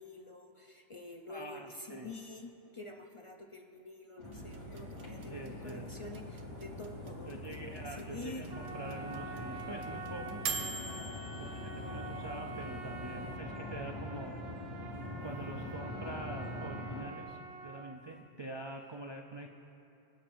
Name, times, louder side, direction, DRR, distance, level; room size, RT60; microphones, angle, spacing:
voice 1, 0.0-8.5, left 2 dB, 35° left, 2 dB, 0.6 m, -48 dB
voice 2, 1.3-2.1 5.3-5.9 7.3-10.5 11.4-14.4 15.2-19.5, right 2 dB, 40° right, 1 dB, 0.4 m, -45 dB
sound 1, 4.2-17.0, left 1 dB, 85° left, 3.4 m, -44 dB
sound 2, 4.3-13.4, right 2 dB, 85° right, 1.1 m, -45 dB
Trumpet, 8.5-18.0, right 3 dB, 60° right, 1.0 m, -47 dB
24.5 x 8.9 x 2.6 m, 2.7 s
omnidirectional pair, 1.2 m